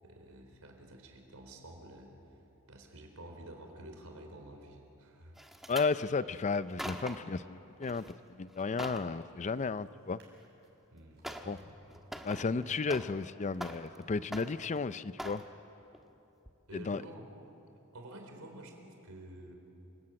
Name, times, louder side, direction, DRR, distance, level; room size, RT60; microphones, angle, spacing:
voice 1, 0.0-2.1 2.7-5.4 10.9-11.3 16.7-17.3 17.9-19.6, right 1 dB, 85° right, 3 dB, 4.1 m, -50 dB
sound 1, 5.4-5.9 6.5-7.3 7.8-8.1 8.5-9.1 10.4-10.5 11.2-11.6 11.9-13.3 13.5-14.0 14.3-14.8 15.2-15.5 15.9-16.1 16.5-16.6, equal, ahead, 1.3 m, -43 dB
voice 2, 5.7-8.0 8.3-10.2 11.5-11.6 12.2-15.4 16.7-17.0, left 4 dB, 35° left, 15 dB, 0.5 m, -33 dB
Drawer open or close, 7.8-13.0 13.7-13.8, equal, 50° right, 6.9 m, -62 dB
28.0 x 18.5 x 8.8 m, 3.0 s
head